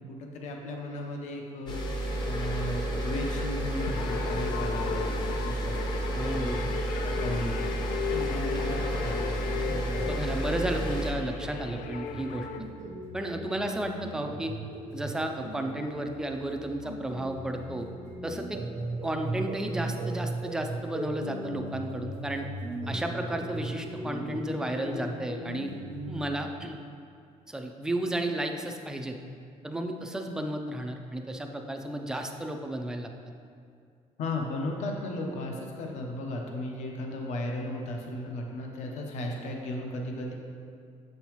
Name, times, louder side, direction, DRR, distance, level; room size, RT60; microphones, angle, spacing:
voice 1, 0.1-5.9 6.3-10.1 34.2-40.3, left 1 dB, 65° left, 1 dB, 0.8 m, -36 dB
sound 1, 1.7-11.1, right 1 dB, 35° left, 0.7 m, -31 dB
sound 2, 3.8-12.6, left 8 dB, 85° left, 0.4 m, -37 dB
voice 2, 6.1-6.6 10.0-12.5 13.1-14.5 14.9-17.9 18.2-18.6 19.0-22.5 22.9-25.7 26.1-26.8 27.5-29.2 29.6-33.1, right 1 dB, 5° right, 4 dB, 0.3 m, -33 dB
sound 3, 9.7-26.3, right 1 dB, 75° right, 0.8 m, -38 dB
7.1 x 5.4 x 3.0 m, 2.3 s
cardioid pair, 175°, 13 cm